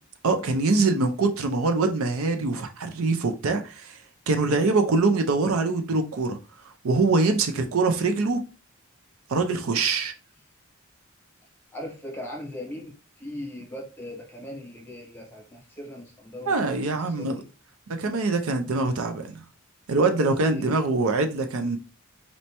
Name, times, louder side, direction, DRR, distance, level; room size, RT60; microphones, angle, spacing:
voice 1, 0.2-4.0 4.3-6.4 6.6-8.4 9.3-10.1 16.5-17.4 17.9-19.4 19.9-21.8, right 3 dB, 75° right, 0.5 m, -24 dB
voice 2, 11.7-17.3 20.2-20.7, left 1 dB, 10° left, 1.2 m, -39 dB
4.2 x 3.2 x 2.9 m
head